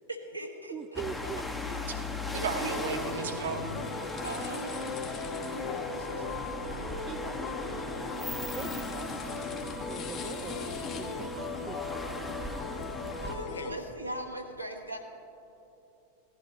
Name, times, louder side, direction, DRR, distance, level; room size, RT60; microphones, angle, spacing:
voice 1, 0.1-1.3 4.2-5.0 13.2-15.0, right 1 dB, 85° right, 2 dB, 1.1 m, -39 dB
voice 2, 0.7-2.2 4.1-4.4 5.6-5.7 7.0-7.8 8.3-10.6 11.0-12.7, right 7 dB, 25° right, 12 dB, 0.5 m, -44 dB
sound 1, 0.9-13.3, left 2 dB, 5° left, 0.9 m, -39 dB
voice 3, 2.3-3.8, right 4 dB, 60° right, 6 dB, 1.1 m, -34 dB
sound 2, 2.6-13.7, left 4 dB, 35° left, 1.2 m, -38 dB
voice 4, 5.5-6.8 13.0-13.9, left 5 dB, 70° left, 8 dB, 0.8 m, -46 dB
17.0 x 11.5 x 3.1 m, 2.9 s
figure-of-eight pair, 90°, 0 cm